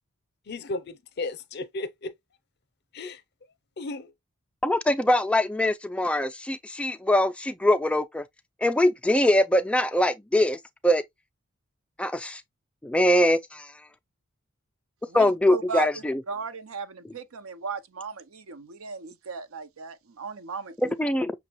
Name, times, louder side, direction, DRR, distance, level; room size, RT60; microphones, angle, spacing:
voice 1, 0.5-2.1 2.9-3.2 3.8-4.1, left 2 dB, 50° left, 0.6 m, -34 dB
voice 2, 4.6-8.2 8.6-11.0 12.0-12.4 12.8-13.7 15.1-16.2 20.8-21.3, left 1 dB, 5° left, 0.3 m, -23 dB
voice 3, 15.1-20.8, right 5 dB, 70° right, 0.6 m, -36 dB
6.0 x 2.2 x 3.0 m
head